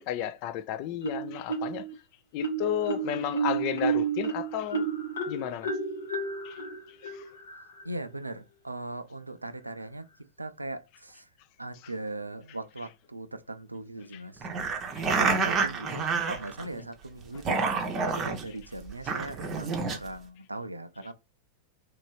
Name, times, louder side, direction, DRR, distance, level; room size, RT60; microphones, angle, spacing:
voice 1, 0.0-1.8 2.3-4.9 5.3-5.7 6.4-6.5, left 11 dB, 45° left, 0.4 m, -32 dB
Marimba xylophone, 1.0-1.9 2.4-7.9, right 5 dB, 65° left, 0.8 m, -32 dB
voice 2, 7.8-10.1 10.4-11.3 11.6-14.5 15.1-17.6 18.0-21.1, right 2 dB, 85° right, 0.3 m, -39 dB
sound 1, 14.4-16.8 17.2-18.4 18.9-20.0, right 4 dB, 30° right, 0.7 m, -28 dB
2.9 x 2.6 x 3.1 m
figure-of-eight pair, 90°, 0 cm